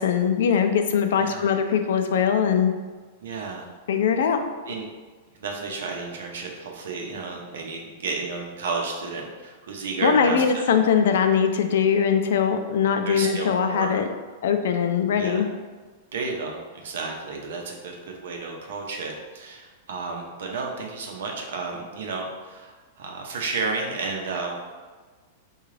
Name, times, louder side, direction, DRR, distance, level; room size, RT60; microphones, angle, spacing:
voice 1, 0.0-2.7 3.9-4.7 10.0-14.1 14.4-15.5, left 7 dB, 75° left, 6 dB, 0.3 m, -21 dB
voice 2, 3.2-3.7 4.7-4.8 5.4-10.6 13.0-13.9 15.1-15.4 16.1-24.5, right 4 dB, 80° right, 1 dB, 0.7 m, -32 dB
3.7 x 2.3 x 3.2 m, 1.4 s
supercardioid pair, 170°, 0 cm